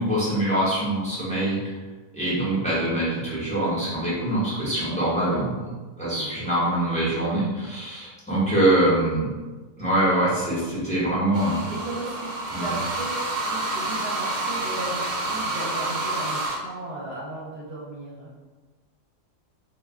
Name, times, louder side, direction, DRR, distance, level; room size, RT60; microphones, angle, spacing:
voice 1, 0.0-1.6 2.1-9.3 9.8-11.6 12.4-12.6, right 1 dB, 5° left, -9 dB, 0.7 m, -24 dB
voice 2, 6.1-6.4 10.6-10.8 11.7-18.3, right 1 dB, 60° right, -7 dB, 0.8 m, -36 dB
sound 1, 11.3-16.6, right 2 dB, 80° right, 0.4 m, -28 dB
2.3 x 2.2 x 3.5 m, 1.3 s
omnidirectional pair, 1.3 m